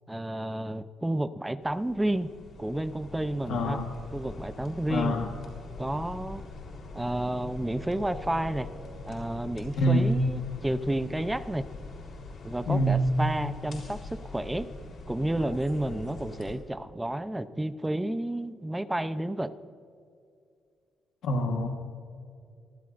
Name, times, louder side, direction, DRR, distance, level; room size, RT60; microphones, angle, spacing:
voice 1, 0.1-2.3 2.6-3.8 4.1-5.1 5.8-6.4 6.9-8.7 9.1-11.6 12.4-14.7 15.1-19.5, right 1 dB, 10° right, 12 dB, 0.7 m, -31 dB
sound 1, 1.6-16.6, left 3 dB, 55° left, 3.9 m, -43 dB
voice 2, 3.5-3.9 4.9-5.3 9.8-10.1 12.7-13.1 21.2-21.7, equal, 75° left, 1 dB, 1.4 m, -25 dB
25.5 x 15.0 x 2.6 m, 2.4 s
cardioid pair, 90°, 0 cm